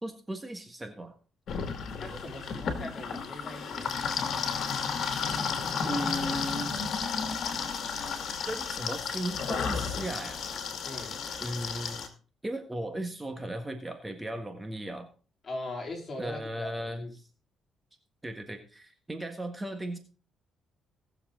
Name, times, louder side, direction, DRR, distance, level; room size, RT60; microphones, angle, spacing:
voice 1, 0.0-1.1 5.8-6.8 8.5-10.4 11.4-12.0 12.4-15.1 16.2-17.3 18.2-20.0, right 1 dB, 15° right, 6 dB, 1.5 m, -36 dB
sound 1, 1.5-12.1, left 6 dB, 65° left, 2.3 m, -33 dB
voice 2, 2.0-3.9 10.8-11.2 15.4-17.1, left 2 dB, 40° left, 0 dB, 4.2 m, -40 dB
18.0 x 6.9 x 3.8 m, 0.37 s
cardioid pair, 90°, 0 cm